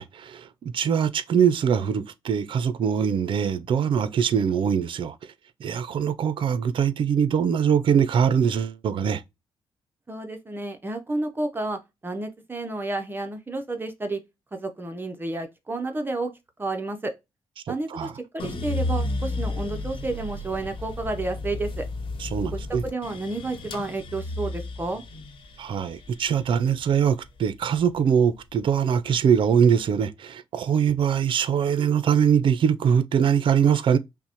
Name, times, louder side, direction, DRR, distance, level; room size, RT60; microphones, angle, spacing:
voice 1, 0.0-5.1 5.6-9.2 17.7-18.1 22.2-22.8 25.6-34.0, right 7 dB, 60° right, 0.4 m, -22 dB
voice 2, 10.1-14.2 14.5-16.3 16.6-17.1 17.7-21.8 22.5-25.0, right 2 dB, 20° right, 0.6 m, -31 dB
sound 1, 18.4-28.6 29.0-29.8, left 2 dB, 65° left, 0.9 m, -33 dB
5.6 x 2.1 x 2.9 m
cardioid pair, 105°, 10 cm